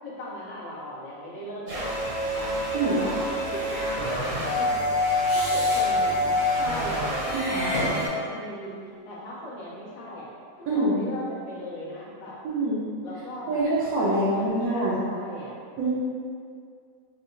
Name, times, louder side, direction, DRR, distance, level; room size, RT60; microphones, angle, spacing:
voice 1, 0.0-2.5 2.8-5.0 5.3-8.8 9.0-10.3 10.6-12.4 13.0-13.6 14.0-15.5, left 1 dB, 75° left, -6 dB, 1.1 m, -38 dB
sound 1, 1.7-8.1, left 1 dB, 45° right, 0.7 m, -26 dB
Meow / Hiss, 3.4-4.0 5.2-5.9 7.2-8.4, left 1 dB, 40° left, 0.6 m, -33 dB
voice 2, 7.3-7.6 10.7-10.9 12.4-12.8 13.5-14.9 15.8-15.9, right 2 dB, 80° right, -8 dB, 1.0 m, -25 dB
3.6 x 2.1 x 2.5 m, 2.2 s
omnidirectional pair, 1.5 m